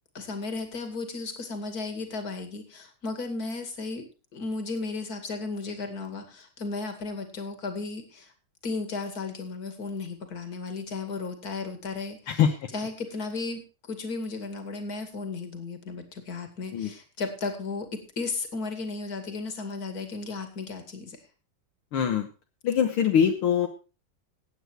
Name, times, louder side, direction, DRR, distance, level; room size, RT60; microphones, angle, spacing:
voice 1, 0.1-8.3 8.6-12.2 12.7-21.2, left 3 dB, 45° left, 7 dB, 2.7 m, -34 dB
voice 2, 12.3-12.7 16.7-16.9 21.9-22.3 22.6-23.7, left 8 dB, 75° left, 5 dB, 2.0 m, -23 dB
16.5 x 8.9 x 4.6 m, 0.32 s
omnidirectional pair, 2.4 m